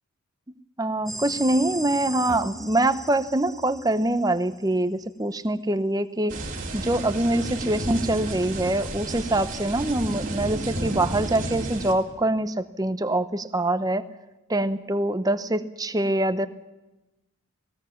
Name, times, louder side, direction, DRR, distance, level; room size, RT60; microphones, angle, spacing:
voice 1, 0.8-6.4 6.7-14.0 14.5-16.5, right 1 dB, 15° right, 11 dB, 0.8 m, -24 dB
sound 1, 1.1-4.8, right 1 dB, ahead, 1.2 m, -38 dB
Heavy Rain Thunder UK Cambridge, 6.3-11.9, right 2 dB, 35° right, 3.6 m, -32 dB
19.5 x 19.0 x 7.2 m, 1.0 s
head